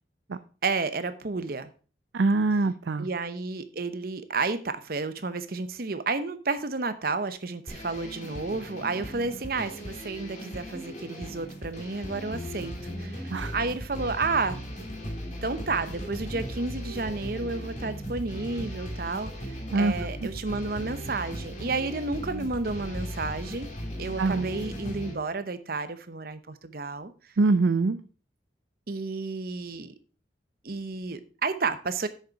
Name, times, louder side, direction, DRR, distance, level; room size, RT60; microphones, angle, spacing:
voice 1, 0.6-1.7 3.0-12.7 13.0-14.6 15.4-23.7 24.0-27.1 28.9-29.9 30.6-32.1, right 3 dB, 55° right, 12 dB, 0.8 m, -31 dB
voice 2, 2.1-3.1 13.3-13.5 19.7-19.9 20.2-20.3 24.2-24.5 27.4-28.0, right 3 dB, 75° right, 11 dB, 0.5 m, -24 dB
sound 1, 7.7-25.1, equal, 40° left, 2.3 m, -37 dB
8.0 x 6.6 x 4.6 m, 0.38 s
head